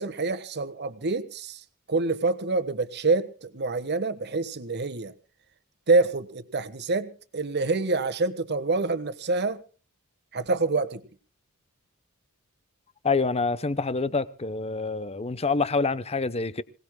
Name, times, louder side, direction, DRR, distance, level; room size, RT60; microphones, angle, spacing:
voice 1, 0.0-5.1 5.9-9.6 10.3-11.0, right 3 dB, 50° right, 1.3 m, -26 dB
voice 2, 13.0-16.6, left 4 dB, 30° left, 0.8 m, -26 dB
26.5 x 18.0 x 2.2 m
head